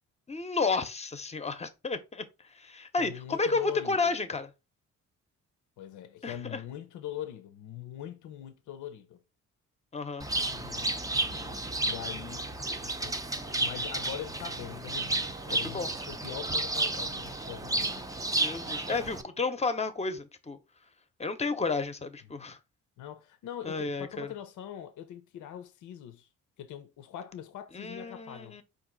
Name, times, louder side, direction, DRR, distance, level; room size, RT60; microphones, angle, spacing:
voice 1, 0.3-2.2 2.6-3.6 3.9-4.5 6.2-6.6 9.9-10.3 15.5-15.9 18.4-20.6 21.2-22.6 23.6-24.3 27.7-28.6, left 4 dB, 20° left, 0.7 m, -32 dB
voice 2, 3.0-4.1 5.8-9.2 10.3-10.9 11.2-12.5 12.8-13.2 13.5-18.1 23.0-26.3 26.6-28.6, left 11 dB, 80° left, 0.6 m, -42 dB
Bird, 10.2-19.2, right 2 dB, 10° right, 0.6 m, -32 dB
4.6 x 2.6 x 3.9 m
cardioid pair, 90°, 30 cm